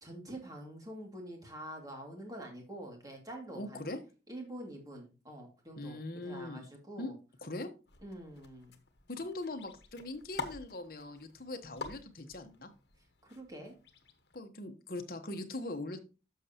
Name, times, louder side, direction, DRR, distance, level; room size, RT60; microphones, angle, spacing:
voice 1, 0.0-3.9 4.3-7.1 8.0-8.7 13.2-13.8, right 1 dB, 20° right, 1 dB, 2.4 m, -46 dB
voice 2, 3.5-4.0 5.8-6.7 7.0-7.1 7.4-7.7 9.1-12.7 14.3-16.0, left 2 dB, 55° left, 6 dB, 1.1 m, -41 dB
sound 1, 7.9-14.4, left 4 dB, 75° left, 1.2 m, -48 dB
10.5 x 6.7 x 2.9 m, 0.32 s
head